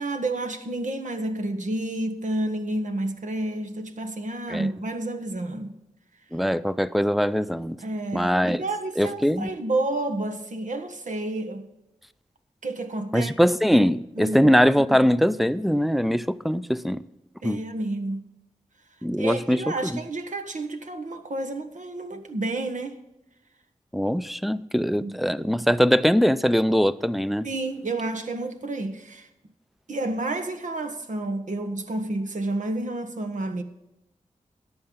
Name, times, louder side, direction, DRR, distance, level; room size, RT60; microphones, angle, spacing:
voice 1, 0.0-5.7 7.8-11.7 12.6-13.3 14.2-14.5 17.4-18.2 19.2-23.0 25.0-25.2 27.4-29.3 29.9-33.6, right 2 dB, 70° right, 1.3 m, -30 dB
voice 2, 6.3-7.8 8.1-8.6 9.0-9.5 13.1-17.0 17.4-17.6 19.0-19.9 23.9-27.5, equal, ahead, 0.5 m, -22 dB
14.5 x 9.9 x 3.9 m
wide cardioid pair, 90°, 13 cm